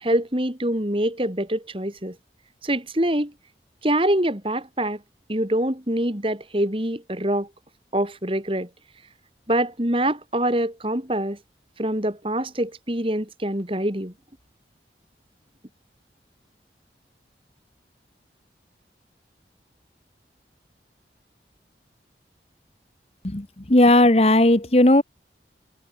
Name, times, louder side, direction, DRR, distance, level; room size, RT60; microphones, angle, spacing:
voice 1, 0.0-2.1 2.6-3.3 3.8-5.0 5.3-7.5 7.9-8.7 9.5-11.4 11.8-14.1, right 1 dB, 30° right, 3.2 m, -24 dB
voice 2, 23.2-25.0, left 1 dB, 35° left, 1.4 m, -16 dB
head